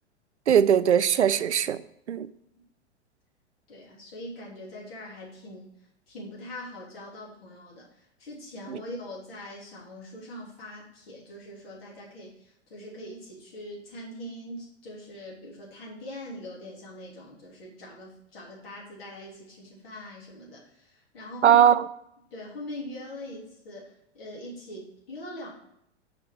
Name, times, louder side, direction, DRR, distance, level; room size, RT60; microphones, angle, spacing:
voice 1, 0.5-1.8 2.1-2.3 8.7-8.8 21.4-21.8, right 9 dB, 75° right, 14 dB, 0.5 m, -20 dB
voice 2, 3.7-5.7 6.1-21.6 22.3-25.5, left 1 dB, 55° left, -4 dB, 3.4 m, -42 dB
6.4 x 4.8 x 6.4 m, 0.76 s
figure-of-eight pair, 100°, 35 cm